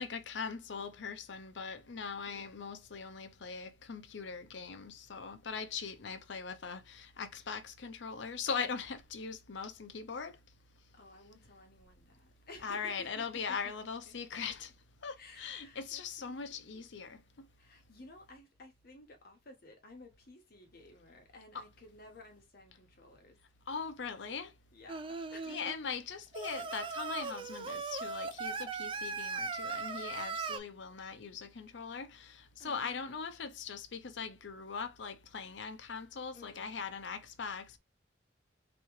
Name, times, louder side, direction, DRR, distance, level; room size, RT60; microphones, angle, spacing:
voice 1, 0.0-10.3 12.6-14.7 15.0-17.5 21.5-21.6 23.7-24.5 25.5-37.8, left 5 dB, 70° left, 0.6 m, -41 dB
voice 2, 2.2-2.7 10.9-13.6 14.1-14.2 14.4-14.5 15.2-16.8 17.6-23.4 24.7-25.8 32.6-33.0 36.3-37.0, left 2 dB, 55° left, 1.1 m, -55 dB
Singing, 24.9-25.7 26.3-30.6, right 4 dB, 30° right, 0.4 m, -38 dB
3.6 x 3.0 x 3.1 m
head